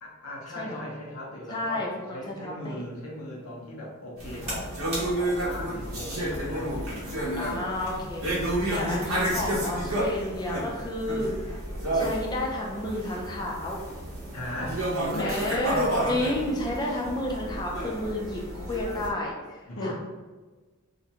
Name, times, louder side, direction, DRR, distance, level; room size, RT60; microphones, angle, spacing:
voice 1, 0.0-7.2 14.3-15.4 16.0-16.3 19.7-19.9, left 1 dB, 75° left, -3 dB, 0.7 m, -38 dB
voice 2, 1.5-2.8 7.4-11.5 11.9-13.8 15.2-19.9, left 1 dB, 20° left, -2 dB, 0.4 m, -31 dB
sound 1, 2.8-8.0, right 1 dB, 25° right, 1.0 m, -44 dB
sound 2, 4.2-19.1, right 1 dB, 65° right, 0.7 m, -31 dB
2.4 x 2.1 x 2.8 m, 1.3 s
head